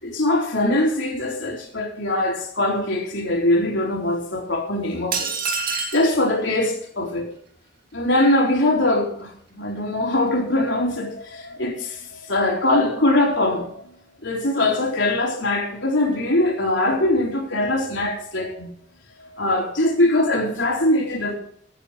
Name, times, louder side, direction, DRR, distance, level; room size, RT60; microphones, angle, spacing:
voice 1, 0.0-5.3 5.9-7.3 7.9-13.7 14.2-18.7 19.2-21.3, left 1 dB, 65° left, 4.3 m, -22 dB
sound 1, 5.1-6.1, right 5 dB, 45° right, 2.5 m, -26 dB
17.0 x 9.1 x 5.2 m
head